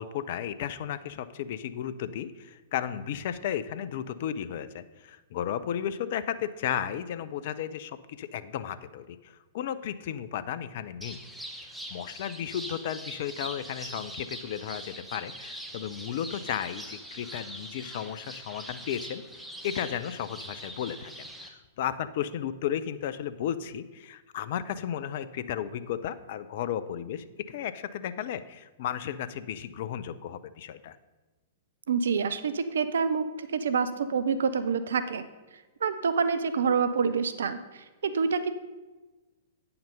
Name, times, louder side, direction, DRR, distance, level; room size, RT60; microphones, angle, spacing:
voice 1, 0.0-11.2 11.6-19.2 19.6-31.0, left 9 dB, 50° left, 14 dB, 0.5 m, -34 dB
sound 1, 11.0-21.5, right 1 dB, ahead, 0.9 m, -42 dB
voice 2, 31.9-35.3 35.8-38.5, right 5 dB, 65° right, 11 dB, 0.5 m, -27 dB
8.7 x 5.8 x 5.4 m, 1.2 s
figure-of-eight pair, 105°, 0 cm